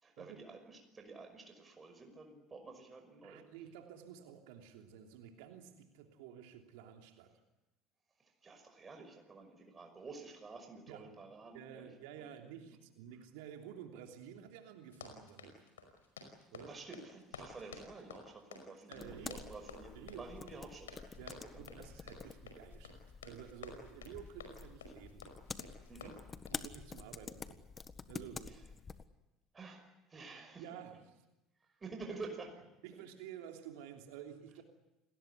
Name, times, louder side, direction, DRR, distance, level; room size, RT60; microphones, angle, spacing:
voice 1, 0.0-3.4 8.2-11.9 12.2-12.3 16.6-21.0 21.5-21.8 25.9-26.1 28.5-28.6 29.5-30.6 31.6-32.6 32.9-33.0, right 3 dB, 25° right, 4 dB, 5.7 m, -50 dB
voice 2, 3.2-7.3 10.9-11.1 11.5-15.6 16.5-16.7 18.9-19.5 19.9-20.3 21.2-25.3 26.0-26.1 26.5-27.7 28.1-28.6 30.6-31.2 32.8-34.6, right 9 dB, 65° right, 4 dB, 3.1 m, -51 dB
Run, 14.8-26.7, left 4 dB, 80° left, 5.2 m, -53 dB
sound 1, 19.0-29.1, left 5 dB, 30° left, 1.6 m, -49 dB
29.0 x 20.0 x 8.4 m, 0.97 s
figure-of-eight pair, 65°, 0 cm